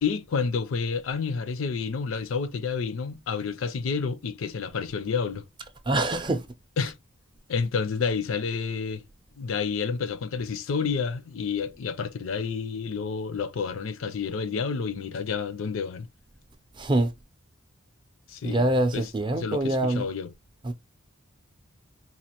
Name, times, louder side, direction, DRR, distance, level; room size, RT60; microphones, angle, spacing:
voice 1, 0.0-5.4 6.8-6.9 7.5-9.0 9.4-16.1 18.3-20.3, left 5 dB, 70° left, 0.4 m, -29 dB
voice 2, 5.9-6.4 6.8-6.9 16.8-17.1 18.4-20.1 20.6-20.7, right 1 dB, 20° right, 0.4 m, -25 dB
4.1 x 2.4 x 2.8 m
head